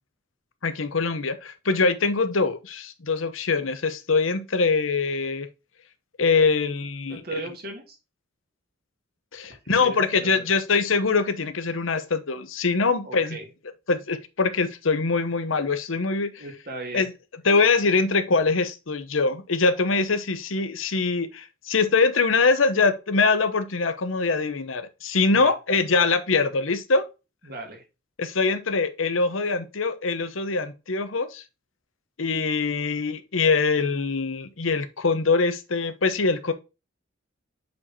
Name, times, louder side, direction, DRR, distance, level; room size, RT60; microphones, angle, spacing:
voice 1, 0.6-5.5 6.2-7.4 9.3-13.4 13.9-16.4 16.9-17.1 17.4-27.0 28.2-31.4 32.2-36.5, left 4 dB, 85° left, 0.9 m, -23 dB
voice 2, 7.1-8.0 9.6-10.5 13.0-13.5 16.4-17.1 25.3-25.5 27.4-27.8, right 2 dB, 50° right, 2.3 m, -37 dB
7.6 x 4.5 x 2.8 m
head